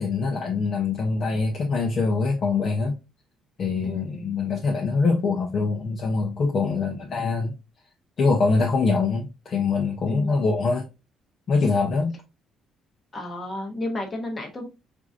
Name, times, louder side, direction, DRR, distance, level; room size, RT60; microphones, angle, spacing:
voice 1, 0.0-3.0 3.6-7.5 8.2-10.9 11.5-12.2, left 4 dB, 35° left, 0.6 m, -24 dB
voice 2, 3.8-4.3 6.7-7.2 10.1-10.5 13.1-14.7, left 2 dB, 20° left, 1.0 m, -33 dB
4.6 x 2.5 x 2.4 m
cardioid pair, 160°, 0 cm